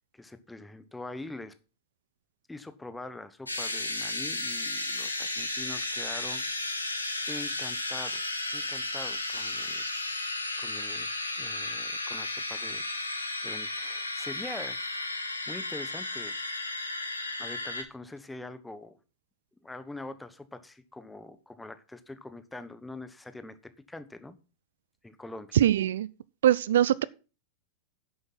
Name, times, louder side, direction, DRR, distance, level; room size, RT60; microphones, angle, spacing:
voice 1, 0.0-1.5 2.5-6.4 7.3-9.8 10.1-14.8 15.5-16.3 17.4-19.0 19.6-24.4 25.0-25.6, left 2 dB, 5° left, 1.2 m, -44 dB
sound 1, 3.5-17.8, left 2 dB, 85° left, 1.9 m, -34 dB
voice 2, 25.5-26.1 26.4-27.0, right 11 dB, 60° right, 0.5 m, -22 dB
11.0 x 7.7 x 5.8 m
figure-of-eight pair, 90°, 0 cm